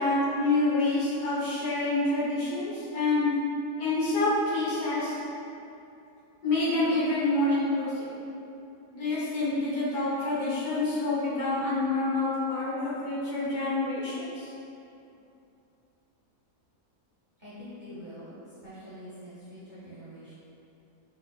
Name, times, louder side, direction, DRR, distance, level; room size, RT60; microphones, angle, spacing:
voice 1, 0.0-3.3 3.8-5.2 6.4-8.1 8.9-14.5, left 2 dB, 85° left, -10 dB, 1.6 m, -27 dB
voice 2, 17.4-20.3, equal, 45° right, -12 dB, 0.6 m, -45 dB
4.7 x 2.2 x 2.4 m, 2.7 s
omnidirectional pair, 1.6 m